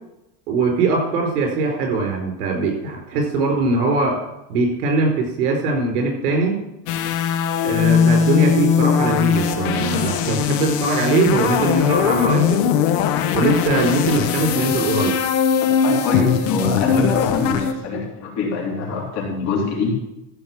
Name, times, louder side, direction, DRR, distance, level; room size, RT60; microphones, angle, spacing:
voice 1, 0.5-4.2 4.5-6.6 7.6-12.7 13.3-15.2, right 3 dB, 90° right, 2 dB, 4.8 m, -21 dB
sound 1, 6.9-17.7, left 7 dB, 60° left, 1.3 m, -20 dB
voice 2, 15.8-19.9, left 4 dB, 35° left, -3 dB, 3.5 m, -24 dB
14.5 x 5.2 x 7.5 m, 0.90 s
cardioid pair, 170°, 45 cm